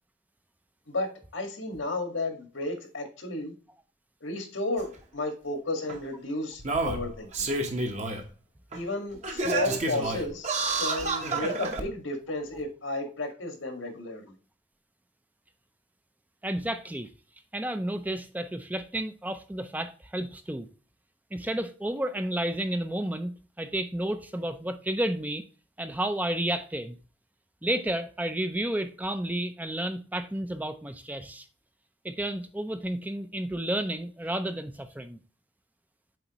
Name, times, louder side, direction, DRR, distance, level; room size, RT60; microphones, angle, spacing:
voice 1, 0.9-3.5 4.2-7.5 8.7-10.5 10.8-14.2, left 2 dB, 85° left, 1.8 m, -33 dB
Singing, 4.8-4.9 5.9-6.0 6.6-8.2 8.7-8.8 9.2-11.8 12.6-12.7, right 3 dB, 35° right, 1.0 m, -29 dB
voice 2, 16.4-17.1 17.5-20.7 21.3-23.3 23.6-25.4 25.8-27.0 27.6-31.5 32.0-35.2, right 1 dB, 10° right, 0.4 m, -31 dB
7.8 x 4.5 x 2.9 m
head